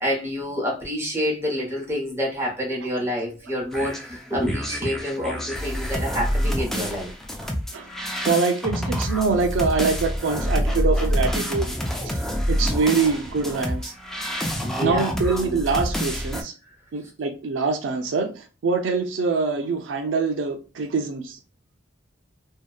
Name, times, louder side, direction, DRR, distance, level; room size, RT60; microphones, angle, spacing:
voice 1, 0.0-7.1 14.6-15.2, equal, 15° right, 0.8 m, -27 dB
sound 1, 3.7-16.4, equal, ahead, 0.3 m, -27 dB
voice 2, 8.3-11.7 12.0-12.2 12.5-13.9 14.7-16.5 16.9-21.4, right 4 dB, 90° right, 0.4 m, -24 dB
2.6 x 2.1 x 2.2 m
head